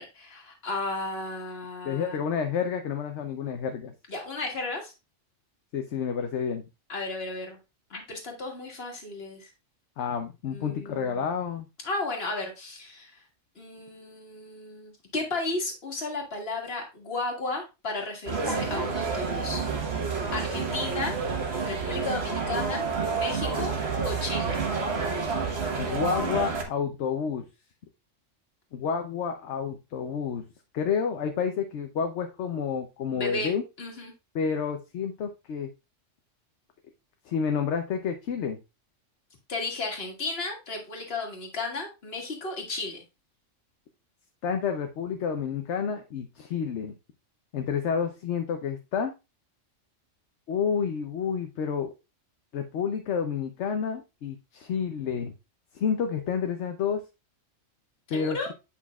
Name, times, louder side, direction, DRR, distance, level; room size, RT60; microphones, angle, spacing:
voice 1, 0.0-2.2 4.1-4.9 6.9-7.6 7.9-9.5 10.5-11.2 11.8-13.2 13.6-19.6 20.3-21.1 21.6-23.7 24.0-24.6 33.1-34.1 39.5-43.0 58.1-58.5, left 2 dB, 50° left, 2 dB, 1.8 m, -34 dB
voice 2, 1.8-3.9 5.7-6.6 10.0-11.7 25.8-27.4 28.7-30.4 30.7-33.6 34.3-35.7 37.3-38.6 44.4-46.9 47.5-49.1 50.5-51.9 52.5-55.3 55.7-57.0 58.1-58.5, left 6 dB, 65° left, 5 dB, 1.0 m, -29 dB
sound 1, 18.3-26.6, right 4 dB, 55° right, 1.4 m, -29 dB
8.4 x 5.6 x 2.3 m, 0.26 s
omnidirectional pair, 1.3 m